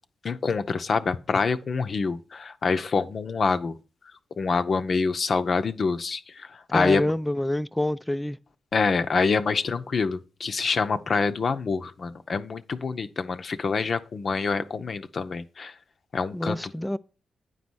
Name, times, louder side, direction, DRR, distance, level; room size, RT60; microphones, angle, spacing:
voice 1, 0.2-3.8 4.4-7.1 8.7-15.7 16.1-16.7, left 4 dB, 55° left, 0.6 m, -26 dB
voice 2, 6.7-8.4 16.3-17.0, left 1 dB, 10° left, 0.3 m, -27 dB
9.3 x 4.1 x 6.2 m
supercardioid pair, 45°, 0 cm